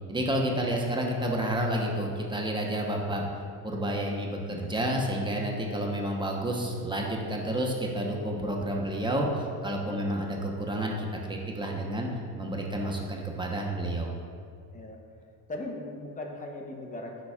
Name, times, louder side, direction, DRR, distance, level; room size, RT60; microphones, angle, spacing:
voice 1, 0.1-3.3 3.6-12.1 12.4-14.2, right 1 dB, 10° right, 0 dB, 0.9 m, -30 dB
voice 2, 15.5-17.2, left 2 dB, 15° left, 1 dB, 0.8 m, -39 dB
10.0 x 4.1 x 2.4 m, 2.3 s
supercardioid pair, 90°, 46 cm